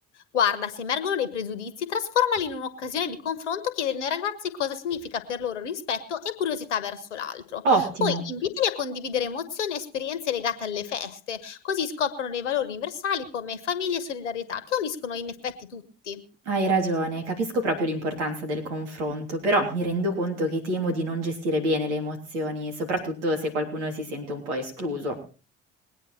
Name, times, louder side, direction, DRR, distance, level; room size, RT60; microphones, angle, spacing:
voice 1, 0.3-7.6 8.0-16.2, left 8 dB, 85° left, 13 dB, 1.4 m, -29 dB
voice 2, 7.6-8.2 16.4-25.2, right 1 dB, 80° right, 3 dB, 3.4 m, -27 dB
21.0 x 9.1 x 4.3 m, 0.35 s
hypercardioid pair, 50°, 35 cm